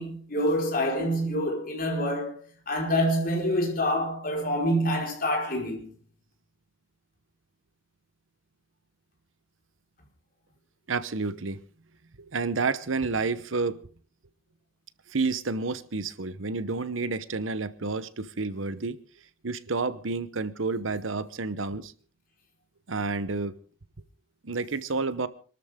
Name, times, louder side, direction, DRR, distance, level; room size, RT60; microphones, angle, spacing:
voice 1, 0.0-2.4 2.7-5.9, equal, 45° left, 4.7 m, -26 dB
voice 2, 10.9-11.6 12.3-13.8 15.1-19.0 19.4-21.9 22.9-23.5 24.4-25.3, right 3 dB, 80° right, 1.0 m, -30 dB
26.0 x 13.0 x 3.7 m
head